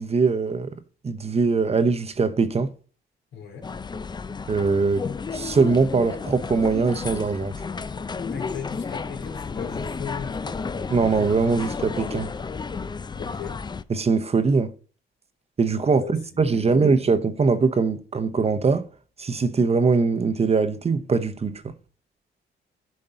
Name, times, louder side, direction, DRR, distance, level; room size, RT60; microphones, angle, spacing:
voice 1, 0.0-2.7 4.5-5.1 5.3-7.5 10.9-12.3 13.9-14.7 15.6-18.9 19.2-21.7, right 4 dB, 30° right, 0.9 m, -22 dB
voice 2, 3.3-3.7 8.3-10.6 13.1-13.6 15.8-16.9, left 7 dB, 75° left, 2.9 m, -37 dB
sound 1, 3.6-13.8, left 5 dB, 20° left, 0.5 m, -32 dB
11.0 x 5.3 x 3.8 m
cardioid pair, 90°, 20 cm